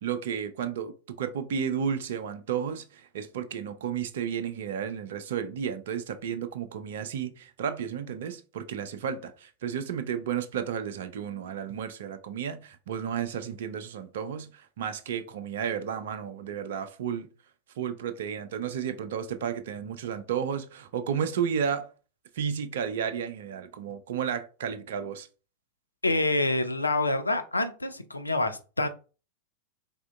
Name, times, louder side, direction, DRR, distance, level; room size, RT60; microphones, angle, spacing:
voice 1, 0.0-17.3 17.8-21.9 22.4-25.3, right 8 dB, 60° right, 0.4 m, -32 dB
voice 2, 26.0-28.9, left 2 dB, 80° left, 0.4 m, -27 dB
3.5 x 3.4 x 2.2 m
figure-of-eight pair, 90°, 0 cm